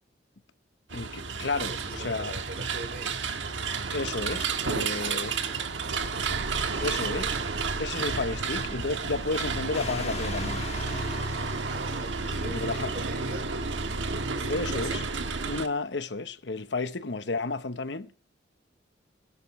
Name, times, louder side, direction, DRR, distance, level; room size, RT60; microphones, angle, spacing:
voice 1, 0.9-2.3 3.9-5.3 6.8-7.3 7.8-10.6 12.4-12.9 14.5-15.0 15.5-18.2, left 3 dB, 70° left, 1.0 m, -32 dB
sound 1, 0.9-15.7, right 4 dB, 85° right, 1.4 m, -31 dB
voice 2, 1.6-3.5 4.4-6.2 6.6-7.4 11.7-15.0, right 2 dB, 55° right, 4.3 m, -43 dB
sound 2, 9.7-13.1, left 4 dB, 35° left, 1.5 m, -40 dB
22.5 x 11.0 x 3.2 m
head